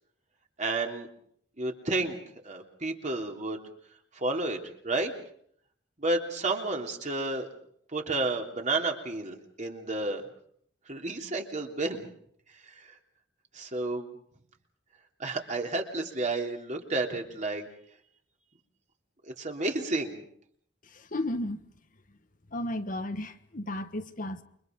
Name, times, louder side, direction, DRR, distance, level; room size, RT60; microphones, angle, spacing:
voice 1, 0.6-1.1 1.6-3.6 4.1-4.6 4.8-5.1 6.0-7.5 7.9-10.2 10.9-12.1 12.7-12.9 13.5-14.1 15.2-17.7 19.3-20.2, right 2 dB, 40° right, 3.2 m, -31 dB
voice 2, 21.1-21.6 22.5-24.4, left 1 dB, 50° left, 1.4 m, -33 dB
29.0 x 23.5 x 5.3 m
head